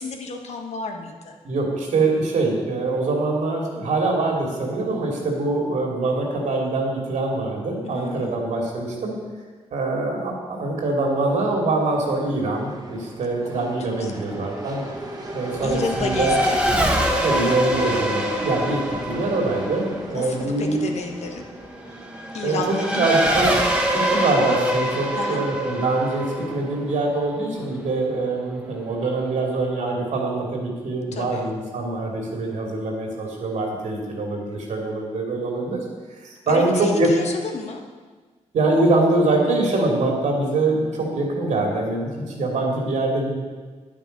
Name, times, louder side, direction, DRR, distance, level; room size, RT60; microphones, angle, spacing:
voice 1, 0.0-1.3 7.8-8.4 13.5-14.2 15.6-16.6 20.1-21.5 22.3-23.0 25.1-25.5 31.1-31.4 36.5-37.8, left 4 dB, 65° left, 3 dB, 1.4 m, -31 dB
voice 2, 1.4-9.2 9.7-14.8 15.3-16.3 17.2-20.8 22.4-35.8 36.2-37.1 38.5-43.4, right 2 dB, 80° right, 0 dB, 2.8 m, -24 dB
sound 1, 11.0-27.0, right 2 dB, 30° right, 1.3 m, -38 dB
Race car auto racing / Accelerating revving vroom, 13.9-28.0, equal, 10° right, 1.4 m, -25 dB
10.5 x 9.0 x 5.3 m, 1.4 s
wide cardioid pair, 125°, 12 cm